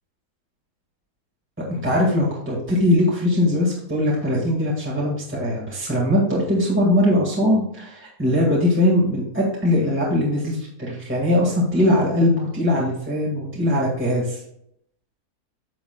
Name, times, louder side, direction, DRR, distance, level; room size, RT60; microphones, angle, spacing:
voice 1, 1.7-14.4, left 1 dB, 10° right, -4 dB, 1.6 m, -21 dB
9.3 x 7.2 x 2.2 m, 0.72 s
omnidirectional pair, 1.6 m